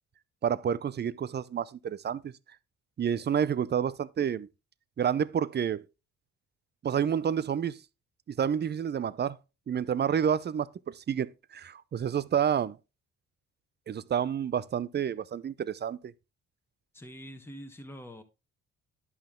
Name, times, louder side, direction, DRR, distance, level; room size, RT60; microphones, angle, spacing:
voice 1, 0.4-2.3 3.0-4.5 5.0-5.8 6.8-7.8 8.4-9.4 9.7-12.8 13.9-16.1, right 8 dB, 35° right, 0.6 m, -29 dB
voice 2, 16.9-18.2, equal, 10° left, 1.2 m, -45 dB
11.0 x 5.6 x 3.7 m
cardioid pair, 90°, 30 cm